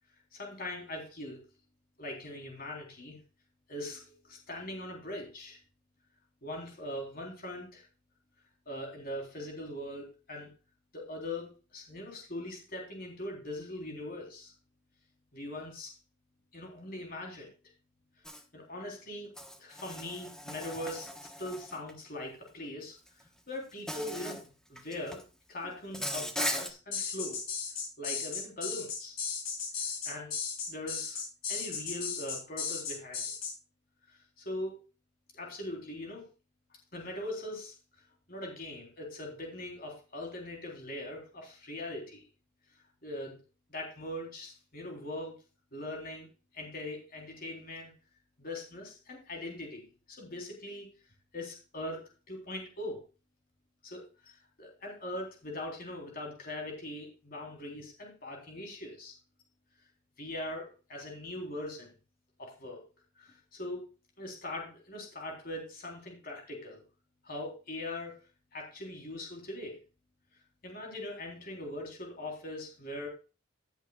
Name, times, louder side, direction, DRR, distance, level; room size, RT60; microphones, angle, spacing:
voice 1, 0.3-1.4 2.0-3.2 3.7-5.6 6.4-7.9 8.7-10.5 10.9-14.5 15.3-15.9 16.5-17.5 18.5-19.3 19.6-21.1 21.4-23.0 23.5-25.2 25.5-27.4 28.0-29.2 30.1-30.3 30.7-31.2 31.5-33.3 34.4-34.8 35.3-36.3 36.9-37.7 38.3-42.2 43.0-43.3 43.7-45.4 45.7-46.3 46.5-47.9 48.4-49.8 50.1-50.9 51.3-52.0 52.3-53.0 53.8-59.1 60.2-61.9 62.4-62.8 63.2-63.8 64.2-66.8 67.2-68.1 68.5-69.8 70.6-73.1, left 1 dB, 45° left, 0 dB, 3.6 m, -41 dB
Insect, 18.3-18.4 19.4-21.9 23.1-23.2 23.9-24.4 24.8-25.2 25.9-26.7, equal, 5° left, 1.0 m, -38 dB
sound 1, 26.9-33.5, left 6 dB, 80° left, 6.3 m, -35 dB
16.0 x 8.2 x 2.3 m, 0.32 s
head